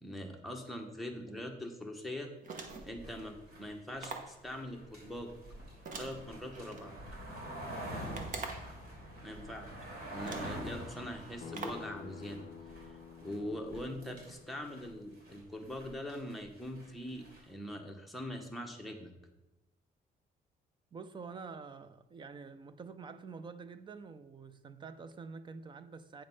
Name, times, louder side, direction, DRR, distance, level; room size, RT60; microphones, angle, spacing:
voice 1, 0.0-2.5 2.8-5.3 5.9-7.0 9.2-9.7 10.1-12.5 12.8-19.1, left 1 dB, ahead, 1.0 m, -42 dB
sound 1, 2.4-3.0 4.0-4.4 5.9-6.8 8.1-8.8 9.7-9.8 10.2-10.6 11.5-11.9, right 4 dB, 55° right, 1.1 m, -44 dB
sound 2, 2.5-17.4, right 1 dB, 70° right, 3.2 m, -46 dB
voice 2, 8.1-8.4 20.9-26.2, right 5 dB, 30° right, 0.5 m, -47 dB
Acoustic guitar, 11.4-16.6, left 7 dB, 55° left, 0.5 m, -52 dB
8.7 x 5.2 x 5.4 m
cardioid pair, 155°, 16 cm